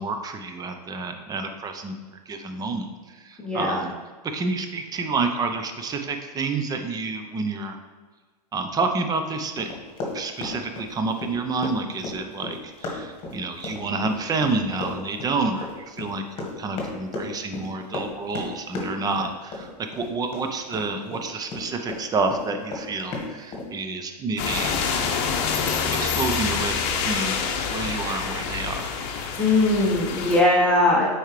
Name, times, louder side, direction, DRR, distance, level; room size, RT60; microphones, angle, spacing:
voice 1, 0.0-2.0 2.3-2.9 3.1-3.9 4.2-7.8 8.5-9.7 10.1-25.2 25.9-28.9, right 3 dB, 20° right, 6 dB, 0.6 m, -29 dB
voice 2, 3.4-3.8 29.4-31.0, left 2 dB, 5° left, -5 dB, 1.0 m, -20 dB
Run, 9.6-22.0 22.3-23.7, left 2 dB, 25° left, 1.6 m, -34 dB
sound 1, 24.4-30.4, left 6 dB, 45° left, 0.8 m, -27 dB
6.3 x 4.6 x 3.2 m, 1.3 s
hypercardioid pair, 115°, 21 cm